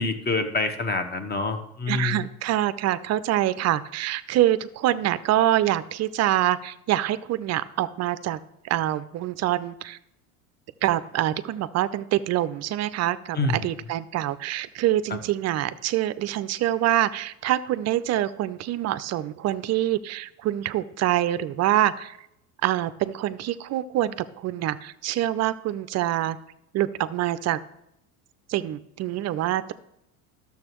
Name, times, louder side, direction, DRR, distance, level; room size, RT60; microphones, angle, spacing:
voice 1, 0.0-2.2 13.3-13.7, left 3 dB, 20° left, 8 dB, 1.0 m, -26 dB
voice 2, 1.9-8.4 8.6-10.0 10.8-22.2 22.6-26.4 26.7-27.6 28.5-29.7, right 13 dB, 40° right, 15 dB, 0.5 m, -25 dB
12.0 x 7.0 x 3.0 m, 0.80 s
hypercardioid pair, 85°, 44 cm